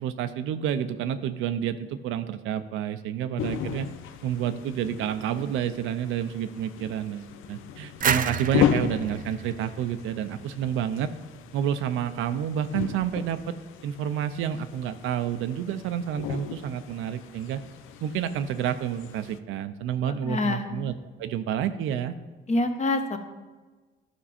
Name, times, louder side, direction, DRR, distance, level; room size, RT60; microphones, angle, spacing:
voice 1, 0.0-3.9 4.2-11.1 11.5-13.4 13.8-17.6 18.0-20.9 21.2-22.1, right 9 dB, 90° right, 10 dB, 0.6 m, -29 dB
sound 1, 3.4-19.4, left 9 dB, 85° left, 0.5 m, -35 dB
sound 2, 8.0-10.7, right 7 dB, 45° right, 0.5 m, -30 dB
voice 2, 20.0-20.6 22.5-23.2, left 2 dB, 35° left, 6 dB, 1.0 m, -26 dB
11.0 x 5.3 x 4.2 m, 1.3 s
cardioid pair, 90°, 20 cm